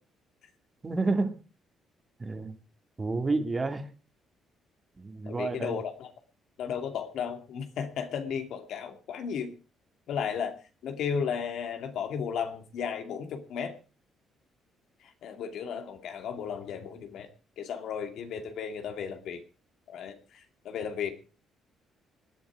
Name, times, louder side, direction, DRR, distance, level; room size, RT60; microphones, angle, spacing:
voice 1, 0.8-1.3 2.2-2.5 3.0-3.9 5.0-5.8, right 3 dB, 25° right, 7 dB, 2.5 m, -29 dB
voice 2, 5.3-6.1 6.6-9.5 10.1-10.6 10.8-13.7 15.0-17.3 17.6-19.4 19.9-21.1, left 7 dB, 75° left, 6 dB, 2.5 m, -34 dB
19.5 x 11.0 x 4.8 m, 0.34 s
cardioid pair, 100°, 0 cm